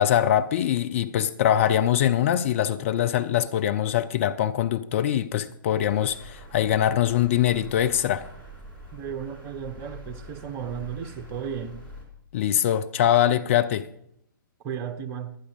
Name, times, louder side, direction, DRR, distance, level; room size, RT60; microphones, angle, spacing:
voice 1, 0.0-8.2 12.3-13.9, left 11 dB, 35° left, 0.5 m, -23 dB
sound 1, 5.7-12.0, equal, 15° left, 3.2 m, -45 dB
voice 2, 8.9-11.9 14.6-15.4, right 8 dB, 25° right, 0.9 m, -34 dB
11.5 x 9.8 x 5.2 m
figure-of-eight pair, 130°, 11 cm